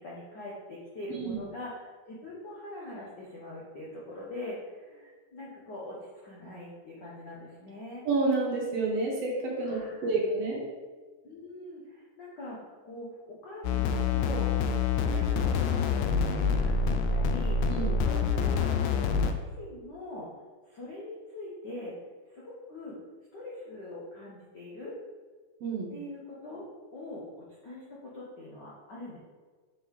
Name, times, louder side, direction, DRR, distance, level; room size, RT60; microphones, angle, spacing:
voice 1, 0.0-8.0 9.6-10.3 11.2-17.7 18.0-18.7 19.1-20.3 20.7-21.9 22.3-23.0 23.3-25.0 25.9-26.6 26.9-29.2, left 1 dB, 70° left, -5 dB, 1.0 m, -43 dB
voice 2, 8.0-10.6 17.7-17.9 25.6-25.9, right 3 dB, 65° right, -2 dB, 1.9 m, -29 dB
sound 1, 13.6-19.3, left 5 dB, 85° left, 2.0 m, -26 dB
6.8 x 3.7 x 4.7 m, 1.4 s
omnidirectional pair, 3.4 m